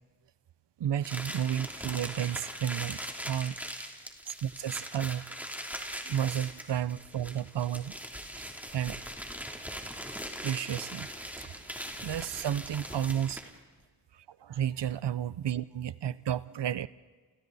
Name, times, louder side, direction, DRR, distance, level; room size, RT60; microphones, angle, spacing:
voice 1, 0.8-3.0 3.3-3.6 4.3-5.3 6.0-7.9 8.4-8.5 8.7-9.0 10.4-11.1 11.4-11.5 12.0-13.4 14.4-16.9, right 10 dB, 75° right, 18 dB, 0.7 m, -32 dB
sound 1, 1.0-13.6, equal, 5° right, 3.2 m, -41 dB
30.0 x 29.0 x 4.1 m, 1.4 s
cardioid pair, 45°, 42 cm